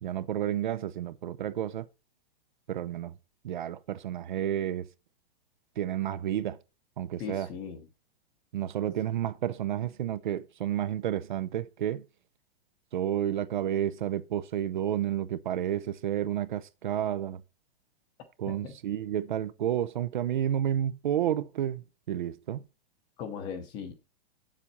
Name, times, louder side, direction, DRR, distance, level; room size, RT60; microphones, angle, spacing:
voice 1, 0.0-1.9 2.7-3.1 3.4-4.9 5.8-6.6 7.0-7.5 8.5-12.0 12.9-17.4 18.4-22.6, right 11 dB, 55° right, 0.6 m, -31 dB
voice 2, 7.2-7.9 18.6-18.8 23.2-23.9, left 7 dB, 15° left, 0.7 m, -38 dB
7.4 x 7.1 x 4.1 m
supercardioid pair, 180°, 29 cm